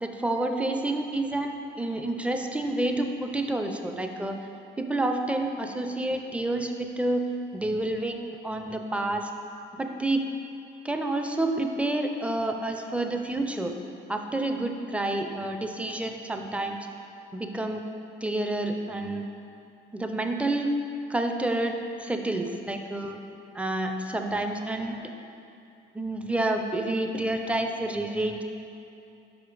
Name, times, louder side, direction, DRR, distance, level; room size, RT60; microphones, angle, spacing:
voice 1, 0.0-4.4 4.8-7.2 7.5-9.3 9.7-10.2 10.8-13.8 14.1-16.9 17.3-17.9 18.2-19.2 19.9-20.7 21.1-23.2 23.5-25.0 25.9-28.4, right 2 dB, 5° right, 4 dB, 0.5 m, -29 dB
5.4 x 5.0 x 4.8 m, 2.7 s
cardioid pair, 90°, 20 cm